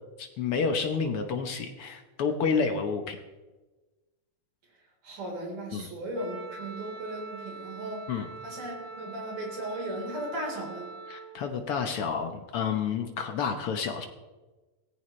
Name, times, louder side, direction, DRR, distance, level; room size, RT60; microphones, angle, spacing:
voice 1, 0.2-3.2 5.7-5.9 8.1-8.3 11.1-14.1, left 5 dB, 70° left, 5 dB, 1.4 m, -29 dB
voice 2, 5.0-8.1 8.4-10.9, right 1 dB, 55° right, -1 dB, 5.2 m, -36 dB
Wind instrument woodwind instrument, 6.1-11.3, right 4 dB, 85° right, 7.5 m, -43 dB
18.0 x 16.0 x 3.2 m, 1.2 s
omnidirectional pair, 3.8 m